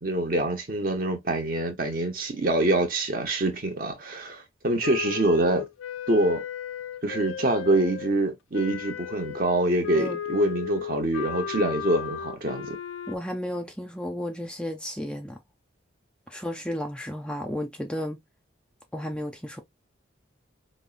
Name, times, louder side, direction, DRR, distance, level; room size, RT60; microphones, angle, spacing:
voice 1, 0.0-5.7 6.1-6.4 7.0-12.8, right 2 dB, 45° right, 0.9 m, -25 dB
Wind instrument woodwind instrument, 4.8-8.1 8.5-13.2, left 8 dB, 85° left, 0.4 m, -35 dB
voice 2, 13.1-15.4 16.3-18.2 18.9-19.6, equal, 5° left, 0.4 m, -33 dB
5.3 x 2.1 x 2.5 m
head